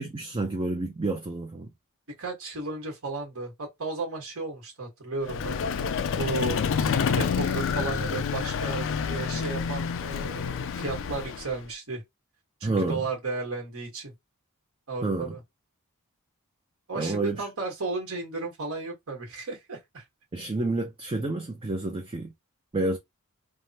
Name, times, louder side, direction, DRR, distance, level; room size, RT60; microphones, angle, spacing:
voice 1, 0.0-1.7 12.6-13.0 15.0-15.4 16.9-17.5 20.3-22.3 22.7-23.0, right 2 dB, 25° right, 0.5 m, -29 dB
voice 2, 2.2-5.6 6.2-12.0 12.6-14.1 14.9-15.4 16.9-20.0, right 3 dB, 65° right, 1.4 m, -34 dB
Vehicle, 5.2-11.7, left 6 dB, 60° left, 0.4 m, -28 dB
3.4 x 2.1 x 2.8 m
head